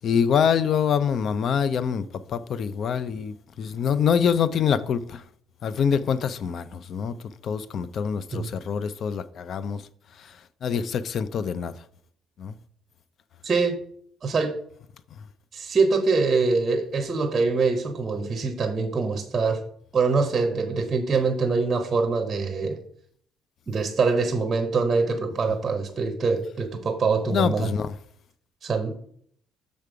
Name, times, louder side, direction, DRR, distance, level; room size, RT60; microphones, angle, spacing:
voice 1, 0.0-5.2 5.6-7.2 7.4-9.8 10.6-11.8 12.4-12.5 27.3-27.9, left 7 dB, 40° left, 0.4 m, -25 dB
voice 2, 13.4-13.8 14.2-14.6 15.5-19.6 19.9-22.8 23.7-27.7 28.6-29.0, right 4 dB, 20° right, 0.7 m, -24 dB
6.6 x 5.2 x 4.7 m
cardioid pair, 175°, 0 cm